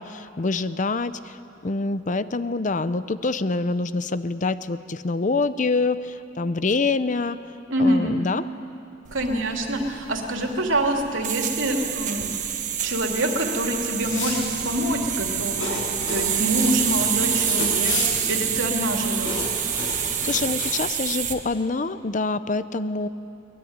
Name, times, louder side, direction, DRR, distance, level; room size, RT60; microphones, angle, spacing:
voice 1, 0.0-1.4 1.6-7.4 7.8-8.5 20.0-23.1, left 3 dB, 40° left, 14 dB, 0.6 m, -26 dB
voice 2, 7.7-8.2 9.1-12.3 12.8-15.8 16.1-18.0 18.3-19.4, right 1 dB, 75° right, 2 dB, 2.9 m, -25 dB
sound 1, 9.1-21.4, right 9 dB, 40° right, 1.5 m, -27 dB
sound 2, 14.0-20.7, left 2 dB, 80° left, 7.3 m, -32 dB
22.0 x 20.0 x 9.6 m, 2.7 s
head